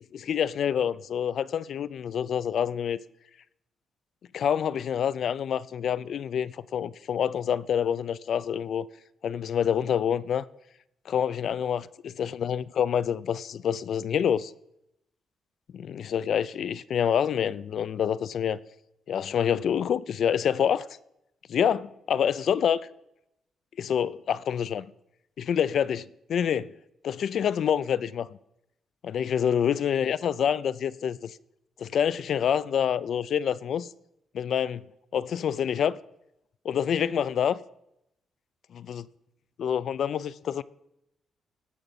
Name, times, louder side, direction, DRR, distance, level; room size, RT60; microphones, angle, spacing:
voice 1, 0.1-3.0 4.3-8.9 9.2-10.5 11.1-14.5 15.7-18.6 19.1-20.9 21.5-22.8 23.8-24.8 25.4-26.7 27.0-28.3 29.0-31.4 31.8-33.9 34.3-34.8 35.1-36.0 36.6-37.5 38.7-39.0 39.6-40.6, left 8 dB, 60° left, 0.3 m, -27 dB
17.0 x 6.1 x 4.1 m
cardioid pair, 125°, 0 cm